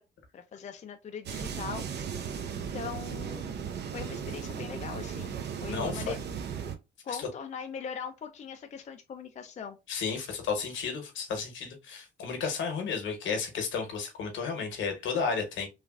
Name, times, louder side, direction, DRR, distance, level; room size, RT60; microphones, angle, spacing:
voice 1, 0.3-1.9 2.7-3.5 3.9-6.2 7.0-9.8, left 7 dB, 35° left, 0.4 m, -40 dB
sound 1, 1.3-6.8, right 7 dB, 60° right, 0.5 m, -36 dB
voice 2, 5.7-6.2 7.1-7.3 9.9-15.7, left 5 dB, 75° left, 1.0 m, -33 dB
3.1 x 2.4 x 2.3 m
cardioid pair, 90°, 20 cm